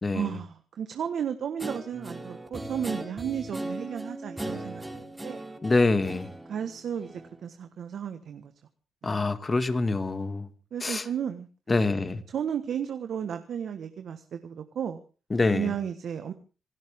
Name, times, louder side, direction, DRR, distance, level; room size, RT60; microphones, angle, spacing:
voice 1, 0.1-5.4 6.5-8.5 9.0-9.2 10.7-11.5 11.7-11.9 12.3-15.0 15.5-16.3, right 8 dB, 70° right, 1.5 m, -34 dB
Guitar, 1.6-7.4, right 1 dB, 10° right, 3.4 m, -38 dB
voice 2, 5.6-6.3 9.0-10.5 10.8-11.0 11.7-12.2 15.3-15.7, left 3 dB, 30° left, 2.1 m, -25 dB
27.0 x 12.5 x 3.7 m
cardioid pair, 75°, 0 cm